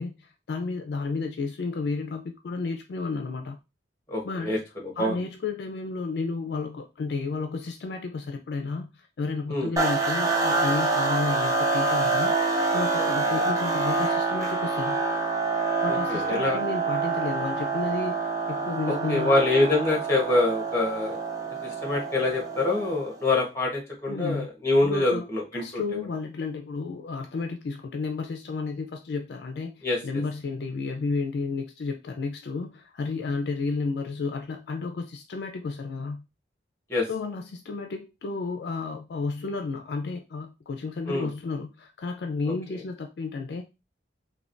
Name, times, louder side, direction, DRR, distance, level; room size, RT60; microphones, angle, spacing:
voice 1, 0.0-3.6 4.2-4.6 5.0-12.4 12.7-15.0 15.8-18.2 18.5-19.3 24.1-24.5 24.8-25.3 25.6-36.2 37.1-43.7, left 4 dB, 60° left, 4 dB, 0.3 m, -32 dB
voice 2, 4.1-5.2 9.5-9.7 13.0-13.1 13.3-13.4 15.9-16.6 18.9-21.2 21.6-25.8 29.8-30.0 36.9-37.0 41.0-41.3, left 2 dB, 15° left, -1 dB, 1.0 m, -25 dB
sound 1, 9.8-23.1, right 3 dB, 20° right, 0.4 m, -26 dB
3.2 x 2.2 x 2.5 m, 0.26 s
head